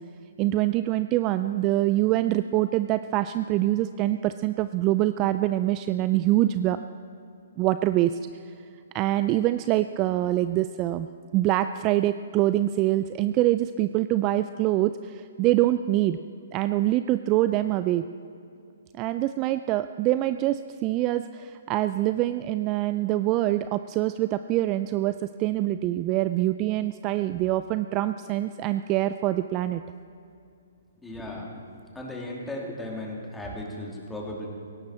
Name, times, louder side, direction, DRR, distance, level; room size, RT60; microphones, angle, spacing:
voice 1, 0.4-6.8 7.6-8.2 8.9-11.1 11.3-16.2 16.5-18.0 19.0-29.8, right 15 dB, 25° right, 12 dB, 0.3 m, -25 dB
voice 2, 31.0-31.5 31.9-34.5, left 1 dB, 5° left, -2 dB, 2.6 m, -36 dB
17.5 x 15.5 x 4.3 m, 2.6 s
hypercardioid pair, 145°, 0 cm